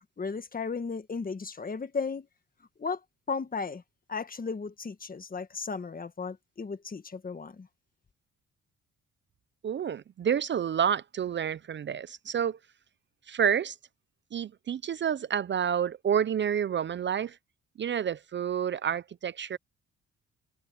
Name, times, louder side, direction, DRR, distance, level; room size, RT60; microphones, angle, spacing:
voice 1, 0.2-2.3 2.8-3.0 3.3-3.8 4.1-7.7, left 5 dB, 30° left, 1.7 m, -35 dB
voice 2, 9.6-12.6 13.3-13.8 14.3-17.4 17.8-19.6, right 8 dB, 40° right, 0.5 m, -29 dB
cardioid pair, 90°, 30 cm